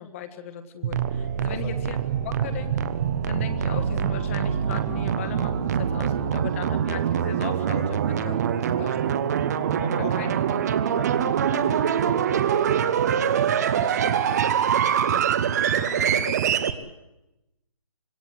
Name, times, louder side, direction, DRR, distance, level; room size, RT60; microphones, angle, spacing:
voice 1, 0.0-2.0 2.2-2.8 3.3-8.4 8.7-9.1 9.9-10.3 13.7-14.2 14.9-15.3 15.9-16.3, left 9 dB, 25° left, 8 dB, 1.6 m, -38 dB
sound 1, 0.8-16.7, right 8 dB, 30° right, 1.1 m, -24 dB
voice 2, 1.4-1.8 9.8-10.4 10.9-12.8 15.6-16.5, left 4 dB, 50° left, 5 dB, 3.4 m, -41 dB
25.5 x 20.5 x 8.0 m, 0.94 s
hypercardioid pair, 160°, 18 cm